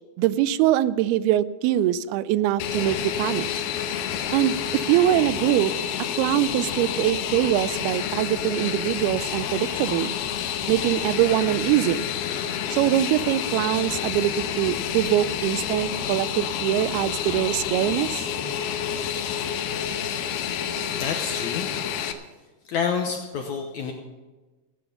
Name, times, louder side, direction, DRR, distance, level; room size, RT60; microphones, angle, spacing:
voice 1, 0.2-3.5 4.3-5.7 6.2-10.1 10.7-12.1 12.7-18.3, right 13 dB, 85° right, 16 dB, 2.5 m, -23 dB
Fixed-wing aircraft airplane, 2.6-22.1, left 8 dB, 90° left, 2.8 m, -29 dB
voice 2, 20.2-21.7 22.7-23.9, left 6 dB, 70° left, 3 dB, 1.8 m, -29 dB
16.0 x 9.5 x 5.9 m, 1.2 s
omnidirectional pair, 4.4 m